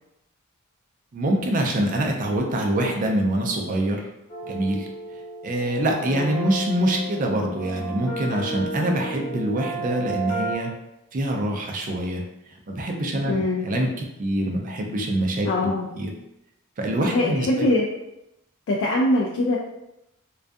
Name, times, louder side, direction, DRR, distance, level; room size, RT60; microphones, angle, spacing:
voice 1, 1.1-4.1 4.5-4.9 5.4-10.7 11.1-12.2 12.7-13.3 13.6-13.9 14.2-16.1 16.8-17.5, right 1 dB, 40° right, 2 dB, 0.4 m, -25 dB
sound 1, 4.3-10.6, right 2 dB, 35° left, 1.0 m, -33 dB
voice 2, 13.2-13.7 15.4-15.9 17.0-17.8 18.7-19.6, left 1 dB, 60° left, -4 dB, 0.3 m, -22 dB
2.4 x 2.2 x 2.5 m, 0.86 s
head